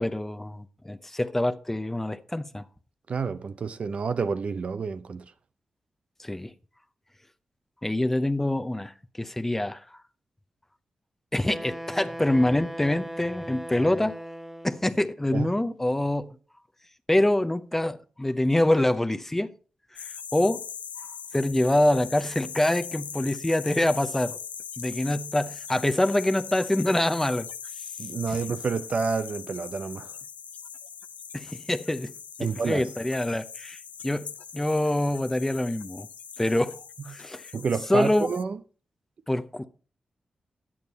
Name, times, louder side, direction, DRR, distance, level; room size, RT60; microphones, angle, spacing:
voice 1, 0.0-2.6 6.2-6.5 7.8-9.8 11.3-14.1 14.6-16.4 17.1-19.5 19.9-20.6 21.3-24.4 24.8-27.5 28.3-28.4 31.3-32.1 32.4-36.1 36.4-36.8 37.1-37.5 37.9-38.3 39.3-39.7, left 1 dB, 10° left, 0.7 m, -25 dB
voice 2, 3.1-5.2 15.3-15.5 28.0-30.1 32.4-32.8 37.5-38.6, right 5 dB, 60° right, 0.6 m, -29 dB
Wind instrument woodwind instrument, 11.5-14.9, equal, 5° right, 0.9 m, -38 dB
sound 1, 20.0-38.4, left 7 dB, 85° left, 0.5 m, -41 dB
10.5 x 8.6 x 4.1 m
cardioid pair, 85°, 2 cm